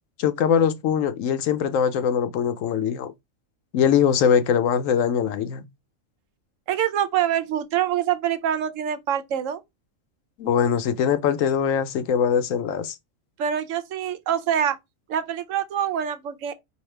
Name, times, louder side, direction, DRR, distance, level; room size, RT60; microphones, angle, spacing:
voice 1, 0.2-3.1 3.7-5.6 10.4-12.9, left 7 dB, 75° left, 1.0 m, -22 dB
voice 2, 6.7-9.6 13.4-14.8 15.1-16.5, right 9 dB, 70° right, 1.0 m, -25 dB
4.8 x 2.8 x 3.2 m
omnidirectional pair, 1.4 m